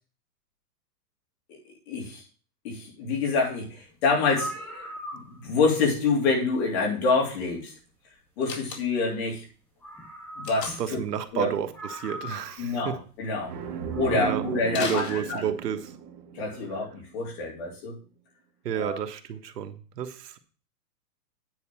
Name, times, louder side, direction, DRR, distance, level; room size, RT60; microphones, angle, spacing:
voice 1, 1.9-2.2 2.6-4.9 5.1-7.7 8.4-9.4 10.4-11.0 11.3-11.5 12.6-13.5 14.0-15.4 16.3-17.9 18.7-19.0, left 4 dB, 40° left, -1 dB, 3.2 m, -27 dB
sound 1, 3.9-4.0 4.2-5.6 7.0-7.1 9.4-9.5 9.8-11.0 11.3-11.4 11.7-12.7 13.7-14.4, equal, 5° left, 1.5 m, -40 dB
Slam, 8.4-9.2 10.4-11.0 14.7-15.8, left 5 dB, 80° left, 2.3 m, -37 dB
voice 2, 10.8-13.0 14.1-14.4 14.7-15.9 18.6-20.4, right 8 dB, 75° right, 7 dB, 1.4 m, -31 dB
sound 2, 13.4-17.1, right 8 dB, 30° right, 1.3 m, -35 dB
9.6 x 4.2 x 7.4 m, 0.38 s
hypercardioid pair, 170°, 48 cm